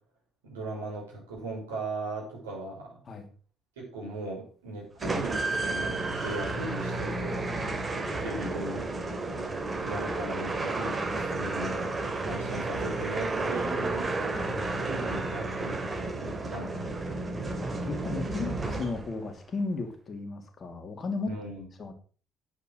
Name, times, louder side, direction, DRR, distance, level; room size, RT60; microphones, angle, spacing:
voice 1, 0.4-3.0 3.8-7.4 8.2-8.8 9.8-11.9 12.2-14.1 14.7-17.0 21.2-21.6, right 2 dB, 80° right, -3 dB, 5.6 m, -38 dB
sound 1, 5.0-19.3, right 2 dB, 30° right, 3.2 m, -32 dB
voice 2, 7.3-7.8 14.3-14.9 17.6-21.3 21.8-21.9, left 3 dB, 40° left, 6 dB, 2.7 m, -35 dB
10.0 x 8.1 x 6.2 m, 0.40 s
figure-of-eight pair, 50°, 0 cm